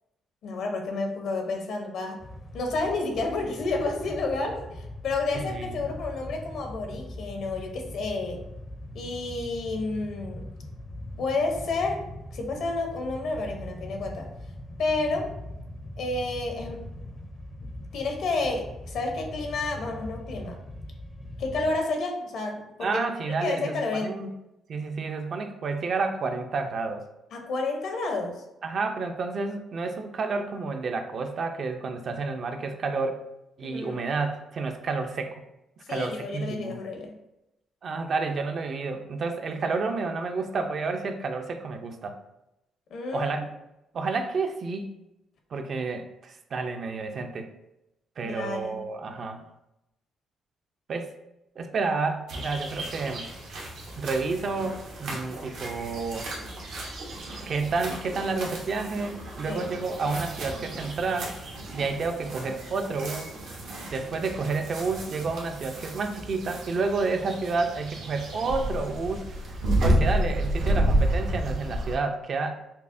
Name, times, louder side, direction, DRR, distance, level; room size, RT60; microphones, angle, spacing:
voice 1, 0.4-2.2 2.5-8.4 8.9-10.5 11.2-12.0 12.3-14.3 14.8-15.3 16.0-16.8 17.9-20.6 21.4-24.2 27.3-28.4 33.6-34.0 35.9-37.2 42.9-43.4 48.2-48.8 59.5-59.7, left 3 dB, 75° left, 3 dB, 0.8 m, -30 dB
sound 1, 2.2-21.8, left 1 dB, 30° left, 0.5 m, -41 dB
voice 2, 5.3-5.9 22.8-24.3 24.7-27.0 28.6-33.2 33.6-35.4 35.9-36.8 37.8-42.2 43.1-43.5 43.9-44.9 45.5-47.5 48.2-49.4 50.9-51.1 51.6-53.3 54.0-56.3 57.5-61.4 61.7-63.3 63.9-69.3 69.8-72.6, right 4 dB, 55° right, 6 dB, 0.4 m, -30 dB
sound 2, 52.3-72.0, right 1 dB, 85° right, 0.9 m, -31 dB
5.4 x 2.1 x 2.5 m, 0.90 s
cardioid pair, 90°, 0 cm